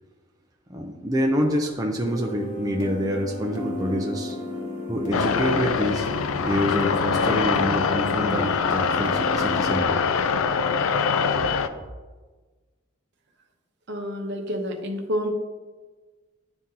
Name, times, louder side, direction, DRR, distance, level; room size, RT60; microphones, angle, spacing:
voice 1, 0.7-4.4 4.9-6.1 6.4-10.0 11.4-11.8, equal, 15° right, 0 dB, 0.5 m, -27 dB
sound 1, 2.0-9.8, left 1 dB, 35° left, 1.1 m, -34 dB
sound 2, 5.1-11.7, left 5 dB, 70° left, 0.4 m, -23 dB
voice 2, 13.9-15.3, equal, 55° right, 3 dB, 0.8 m, -29 dB
10.5 x 3.7 x 2.8 m, 1.3 s
head